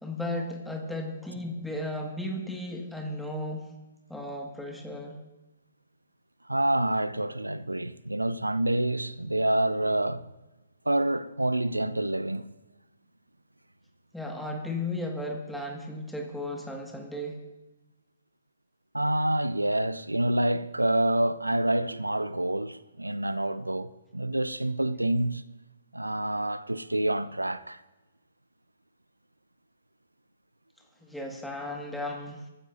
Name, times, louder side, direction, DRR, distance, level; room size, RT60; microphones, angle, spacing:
voice 1, 0.0-3.7 4.1-5.2 14.1-17.4 31.0-32.5, left 1 dB, ahead, 1.9 m, -35 dB
voice 2, 6.5-10.2 10.9-12.4 18.9-25.4 25.9-27.8, right 1 dB, 80° right, 0.6 m, -27 dB
23.0 x 14.5 x 2.7 m
figure-of-eight pair, 125°, 0 cm